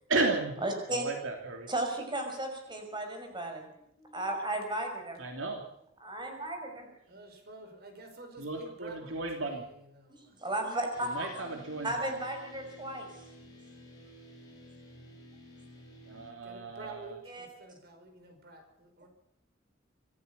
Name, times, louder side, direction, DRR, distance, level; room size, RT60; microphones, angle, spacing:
voice 1, 0.1-0.6 0.9-1.7 5.2-5.6 8.4-9.6 11.1-11.9 16.1-17.1, right 3 dB, 70° right, 3 dB, 3.2 m, -33 dB
voice 2, 0.6-1.0 1.7-5.2 6.0-6.9 10.1-11.1 11.8-13.1 17.3-17.5, right 1 dB, 25° right, 4 dB, 6.0 m, -35 dB
voice 3, 7.1-10.4 16.4-19.1, right 2 dB, 55° right, 6 dB, 5.1 m, -50 dB
sound 1, 10.9-16.3, equal, 20° left, 8.0 m, -52 dB
26.0 x 15.0 x 7.0 m, 0.74 s
head